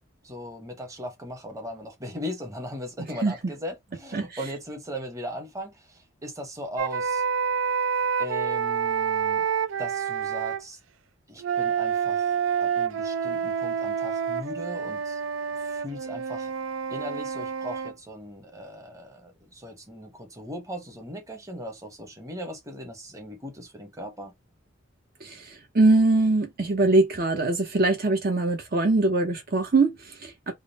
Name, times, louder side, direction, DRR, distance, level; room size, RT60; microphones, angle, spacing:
voice 1, 0.2-7.2 8.2-9.5 9.8-10.8 11.3-15.2 15.6-16.5 16.9-24.3, equal, 15° right, 0.9 m, -38 dB
sound 1, 6.8-10.6 11.4-17.9, right 7 dB, 80° right, 0.4 m, -28 dB
voice 2, 25.2-30.5, right 2 dB, 50° right, 0.8 m, -22 dB
3.6 x 2.1 x 4.0 m
head